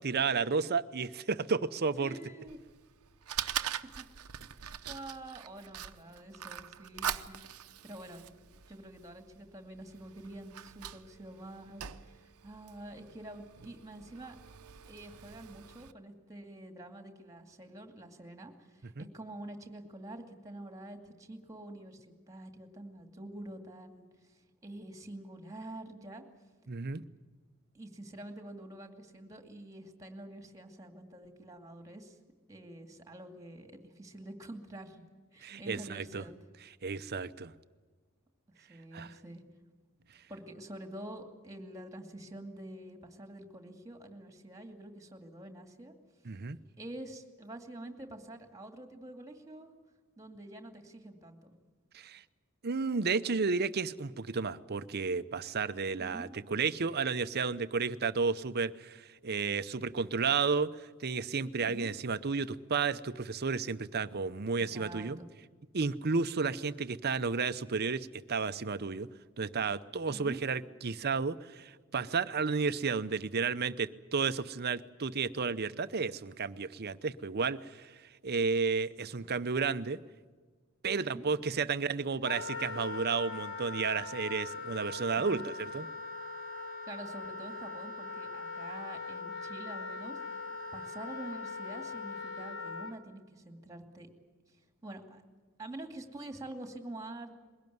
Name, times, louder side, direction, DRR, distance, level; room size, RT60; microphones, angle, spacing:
voice 1, 0.0-2.1 19.0-19.1 26.7-27.1 35.4-36.3 36.8-37.5 38.9-39.1 46.2-46.6 51.9-52.2 52.6-65.2 65.7-69.1 69.4-77.9 78.2-80.0 80.8-85.9, right 5 dB, 45° right, 13 dB, 0.7 m, -32 dB
voice 2, 2.0-2.6 3.6-4.1 4.6-8.2 8.7-14.4 14.9-26.2 27.7-32.2 32.5-35.0 35.3-36.3 38.7-39.4 40.3-45.9 46.8-49.7 50.2-51.5 56.0-56.3 61.6-61.9 64.6-65.3 70.1-70.4 80.9-81.3 85.2-85.4 86.9-94.1 94.8-95.2 95.6-97.4, right 1 dB, 15° right, 5 dB, 2.4 m, -47 dB
Fire, 2.5-15.9, right 10 dB, 80° right, 0.8 m, -43 dB
Wind instrument woodwind instrument, 82.2-92.9, left 3 dB, 60° left, 2.4 m, -41 dB
22.0 x 17.5 x 9.4 m, 1.4 s
head